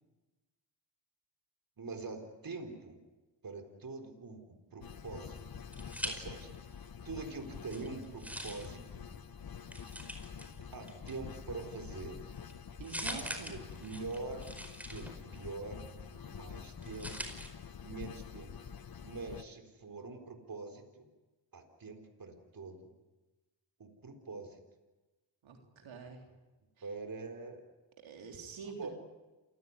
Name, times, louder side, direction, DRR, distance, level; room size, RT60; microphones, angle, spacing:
voice 1, 1.8-3.0 3.4-5.6 6.0-9.1 10.7-12.2 13.1-14.5 14.9-15.8 16.2-17.1 17.8-18.5 19.0-21.1 21.5-22.9 23.8-24.6 26.8-27.6 28.8-28.9, right 3 dB, 45° right, 5 dB, 4.2 m, -44 dB
sound 1, 4.8-19.4, left 7 dB, 50° left, 1.4 m, -47 dB
sound 2, 5.3-6.8 7.1-17.5, equal, 5° right, 4.9 m, -46 dB
voice 2, 12.8-13.6 25.4-26.2 26.8-26.9 28.0-28.9, right 5 dB, 80° right, 2 dB, 3.6 m, -46 dB
28.0 x 16.5 x 9.7 m, 1.2 s
cardioid pair, 65°, 46 cm